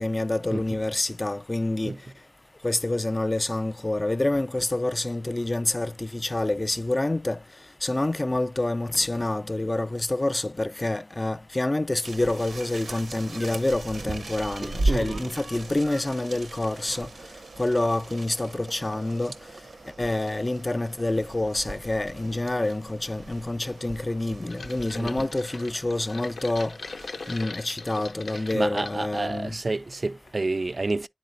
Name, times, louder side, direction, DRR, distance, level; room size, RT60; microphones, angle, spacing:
voice 1, 0.0-1.9 2.6-7.4 7.8-17.1 17.6-19.3 20.0-26.7 27.3-29.6, left 2 dB, 30° left, 0.3 m, -27 dB
sound 1, 12.0-27.4, right 2 dB, 90° right, 0.8 m, -37 dB
voice 2, 14.6-15.3 16.9-17.0 24.9-25.3 28.3-31.1, right 2 dB, 50° right, 0.3 m, -30 dB
sound 2, 24.5-29.0 29.5-30.0 30.3-30.4, left 4 dB, 90° left, 0.6 m, -40 dB
9.4 x 3.9 x 2.5 m
wide cardioid pair, 55°, 0 cm